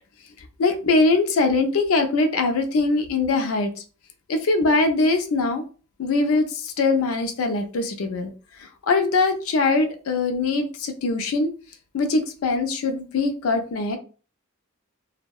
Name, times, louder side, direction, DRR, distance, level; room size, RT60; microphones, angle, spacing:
voice 1, 0.6-3.7 4.3-5.6 6.0-8.3 8.6-11.5 11.9-14.0, left 3 dB, 75° left, 6 dB, 0.4 m, -22 dB
2.7 x 2.0 x 2.2 m, 0.36 s
head